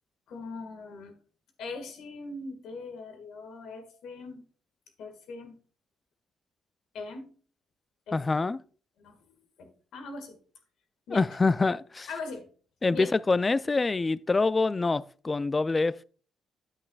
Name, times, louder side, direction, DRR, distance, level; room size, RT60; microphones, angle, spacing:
voice 1, 0.3-1.1 1.6-4.4 5.0-5.6 6.9-7.3 8.1-8.5 9.0-10.4 11.1-11.2 12.1-12.5 12.9-13.1, left 3 dB, 80° left, 1.7 m, -41 dB
voice 2, 8.1-8.6 11.1-12.1 12.8-16.0, left 3 dB, 25° left, 0.3 m, -25 dB
9.9 x 8.5 x 2.3 m
cardioid pair, 90°, 0 cm